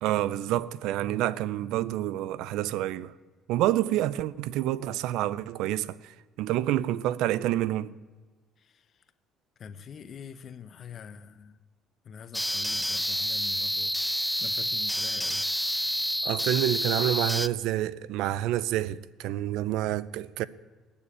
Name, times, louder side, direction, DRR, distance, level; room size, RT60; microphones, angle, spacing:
voice 1, 0.0-3.1 3.5-7.9 16.2-20.4, right 13 dB, 80° right, 0.5 m, -28 dB
voice 2, 9.6-11.6 12.1-13.9 14.4-15.4, left 7 dB, 50° left, 0.6 m, -44 dB
sound 1, 12.3-17.5, equal, ahead, 0.4 m, -29 dB
19.0 x 7.0 x 8.5 m
cardioid pair, 100°, 0 cm